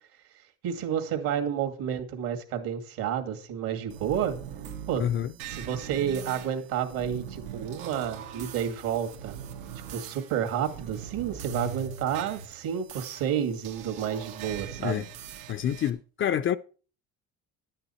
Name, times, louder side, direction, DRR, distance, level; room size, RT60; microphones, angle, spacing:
voice 1, 0.6-4.4 4.9-5.1 5.5-9.4 9.9-15.1, right 9 dB, 65° right, 2.2 m, -30 dB
sound 1, 3.9-15.9, right 8 dB, 85° right, 1.6 m, -41 dB
voice 2, 5.0-5.3 14.8-15.0 15.5-16.6, left 10 dB, 35° left, 0.5 m, -27 dB
11.0 x 8.9 x 4.3 m
supercardioid pair, 100°, 37 cm